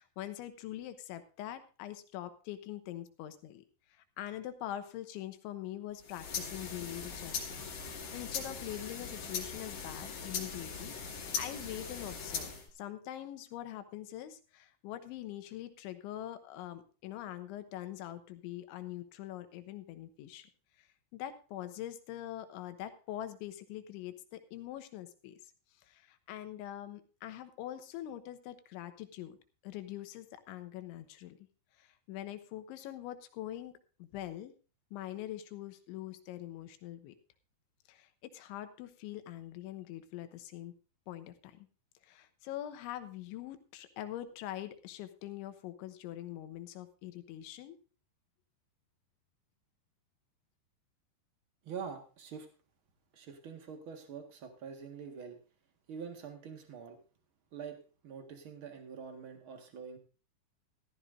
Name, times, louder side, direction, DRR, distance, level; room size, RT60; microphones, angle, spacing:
voice 1, 0.0-3.6 3.9-7.6 7.9-12.5 12.8-20.5 20.8-20.9 21.1-25.4 25.9-29.4 29.6-31.4 31.8-33.7 34.0-34.5 34.9-37.2 37.9-40.7 41.1-41.7 42.0-47.8, left 13 dB, 85° left, 10 dB, 3.4 m, -43 dB
sound 1, 6.0-12.7, left 5 dB, 50° left, 3.9 m, -40 dB
voice 2, 51.6-52.5 53.1-55.4 55.9-57.0 57.5-57.8 58.0-60.0, right 6 dB, 70° right, 4 dB, 1.2 m, -45 dB
14.5 x 14.5 x 2.6 m, 0.34 s
omnidirectional pair, 5.3 m